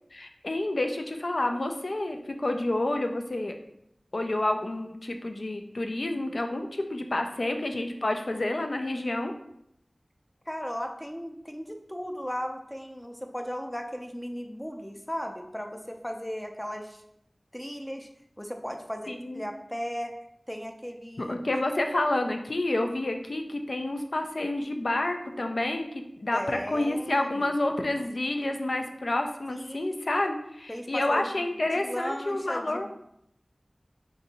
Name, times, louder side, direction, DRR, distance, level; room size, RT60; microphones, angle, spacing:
voice 1, 0.1-3.6 4.1-9.3 19.1-19.4 21.2-32.9, left 1 dB, 70° left, 5 dB, 0.4 m, -29 dB
voice 2, 10.5-17.0 17.5-18.1 18.4-20.1 20.5-21.3 26.3-27.5 29.5-30.0 30.7-31.5 31.7-32.9, equal, 10° left, 4 dB, 0.5 m, -36 dB
2.7 x 2.6 x 4.1 m, 0.76 s
wide cardioid pair, 40°, 0 cm